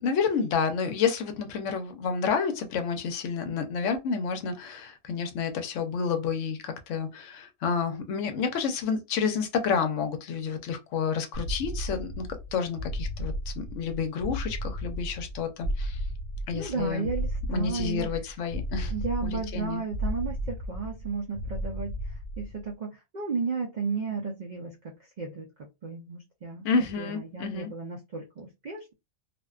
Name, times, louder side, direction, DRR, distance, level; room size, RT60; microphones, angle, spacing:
voice 1, 0.0-16.0 16.5-17.1 17.5-18.9 19.2-19.8 26.6-27.7, left 6 dB, 70° left, 0.9 m, -29 dB
sound 1, 11.3-22.7, equal, 85° right, 1.1 m, -34 dB
voice 2, 16.5-18.1 18.9-22.0 22.4-26.7 27.0-28.9, right 4 dB, 70° right, 0.4 m, -34 dB
2.5 x 2.1 x 2.3 m
omnidirectional pair, 1.4 m